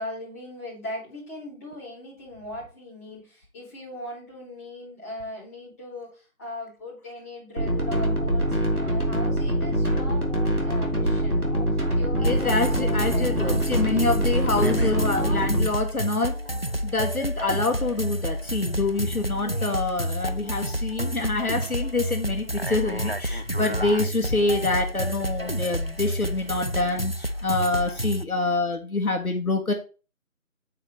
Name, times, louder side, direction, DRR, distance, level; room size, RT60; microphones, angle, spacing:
voice 1, 0.0-6.1 6.4-11.6 11.9-14.0 14.5-15.4 19.3-19.8 23.7-24.0, left 1 dB, 10° left, -9 dB, 4.2 m, -39 dB
sound 1, 7.6-15.7, equal, 90° right, 4.4 m, -24 dB
voice 2, 12.2-16.3 16.8-29.7, left 3 dB, 75° left, 3 dB, 1.8 m, -26 dB
sound 2, 12.2-28.2, equal, 45° left, 0.4 m, -29 dB
9.6 x 8.4 x 3.3 m, 0.34 s
figure-of-eight pair, 165°, 43 cm